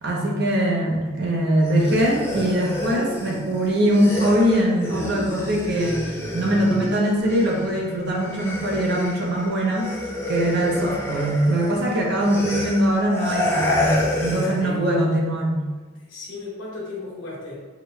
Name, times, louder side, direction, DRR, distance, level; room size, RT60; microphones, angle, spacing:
voice 1, 0.0-9.9 10.3-15.6, right 1 dB, 60° right, -1 dB, 0.7 m, -22 dB
sound 1, 1.6-7.8 8.1-14.6, left 1 dB, 15° left, 0.4 m, -29 dB
voice 2, 12.0-12.6 14.2-14.9 15.8-17.5, left 2 dB, 70° left, -4 dB, 1.1 m, -36 dB
3.9 x 2.1 x 3.1 m, 1.3 s
head